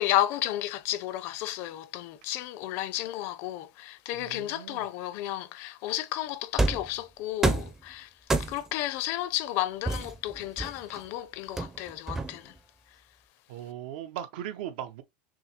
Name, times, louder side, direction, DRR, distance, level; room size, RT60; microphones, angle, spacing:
voice 1, 0.0-8.1 8.4-12.5, left 13 dB, 55° left, 0.5 m, -32 dB
voice 2, 4.1-4.8 13.5-15.0, right 11 dB, 80° right, 0.8 m, -38 dB
sound 1, 6.6-6.9 7.4-7.8 8.3-8.8 9.9-11.0 11.6-12.6, right 2 dB, 10° right, 0.5 m, -28 dB
6.1 x 2.0 x 2.9 m
supercardioid pair, 155°, 5 cm